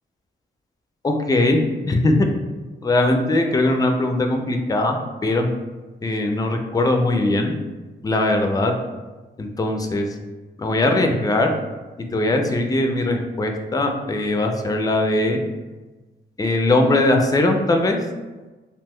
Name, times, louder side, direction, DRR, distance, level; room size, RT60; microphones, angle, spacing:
voice 1, 1.0-2.2 2.8-5.5 6.0-7.5 8.0-8.7 9.4-10.1 10.6-11.5 12.1-15.4 16.4-18.0, left 2 dB, 20° left, 4 dB, 0.4 m, -20 dB
2.6 x 2.1 x 3.5 m, 1.2 s
cardioid pair, 60°, 20 cm